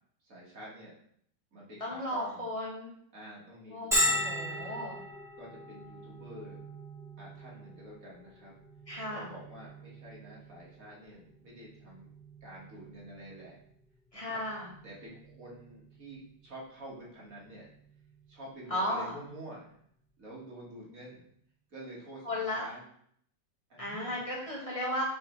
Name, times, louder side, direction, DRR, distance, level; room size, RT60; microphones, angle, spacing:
voice 1, 0.2-1.0 1.5-2.5 3.1-4.8 5.4-6.6 7.2-8.6 9.1-12.1 12.4-13.6 14.1-14.4 14.8-17.7 18.3-19.7 20.2-21.2 21.7-22.8 23.7-24.3, right 1 dB, 50° right, -5 dB, 2.0 m, -48 dB
voice 2, 1.8-2.9 3.7-5.0 8.9-9.3 14.1-14.7 18.7-19.2 22.2-22.7 23.8-25.0, left 1 dB, 20° left, -4 dB, 1.5 m, -35 dB
Bell, 3.9-19.3, equal, ahead, 1.6 m, -39 dB
6.3 x 4.7 x 3.1 m, 0.66 s
omnidirectional pair, 2.0 m